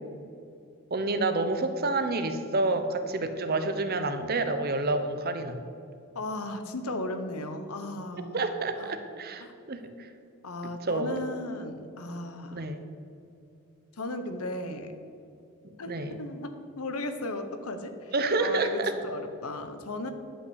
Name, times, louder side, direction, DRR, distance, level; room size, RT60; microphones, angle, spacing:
voice 1, 0.9-5.6 8.1-10.1 10.8-11.2 12.5-12.8 15.6-16.1 18.1-18.9, right 2 dB, 45° right, 8 dB, 0.9 m, -29 dB
voice 2, 6.1-8.5 8.8-8.9 9.4-9.5 10.4-12.8 14.0-14.9 15.8-20.1, left 2 dB, 90° left, 8 dB, 1.1 m, -36 dB
11.0 x 5.8 x 8.1 m, 2.6 s
head